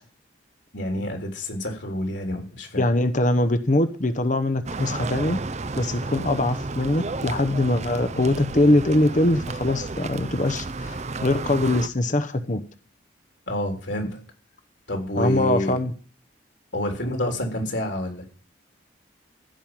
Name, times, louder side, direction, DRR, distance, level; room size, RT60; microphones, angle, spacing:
voice 1, 0.7-2.8 13.5-14.2 14.9-15.7 16.7-18.3, left 1 dB, 65° left, 3 dB, 3.7 m, -28 dB
voice 2, 2.8-5.4 5.8-12.6 15.2-15.9, left 1 dB, 40° left, 10 dB, 0.9 m, -22 dB
sound 1, 4.7-11.9, right 3 dB, 35° right, 0.6 m, -32 dB
15.5 x 5.6 x 9.0 m, 0.41 s
head